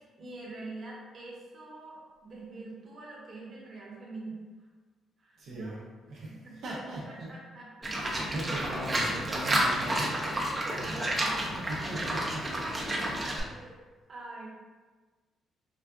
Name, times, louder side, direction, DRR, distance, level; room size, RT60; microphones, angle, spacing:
voice 1, 0.0-4.7 5.2-5.8 6.2-6.7 7.1-8.1 8.8-8.9 10.4-11.8 13.2-13.8 14.1-14.5, right 2 dB, 45° right, -5 dB, 1.2 m, -45 dB
voice 2, 5.4-5.8 6.1-7.3 8.3-10.4 10.8-11.0 11.4-12.7, right 1 dB, 80° right, -8 dB, 0.9 m, -39 dB
Livestock farm animals working animals, 7.8-13.4, right 1 dB, 25° right, 0.7 m, -30 dB
5.0 x 2.4 x 2.3 m, 1.3 s
cardioid pair, 90°, 0 cm